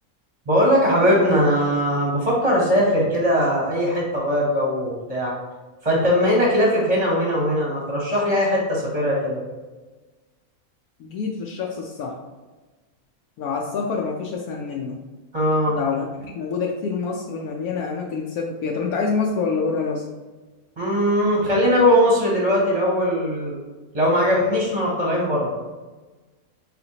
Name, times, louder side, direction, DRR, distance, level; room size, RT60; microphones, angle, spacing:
voice 1, 0.5-5.3 5.8-9.4 15.3-15.8 20.8-23.6 23.9-25.5, equal, 30° right, -3 dB, 0.8 m, -20 dB
voice 2, 11.0-12.2 13.4-15.0 15.7-20.1, left 5 dB, 80° left, -1 dB, 1.1 m, -26 dB
4.2 x 4.1 x 2.8 m, 1.2 s
omnidirectional pair, 1.6 m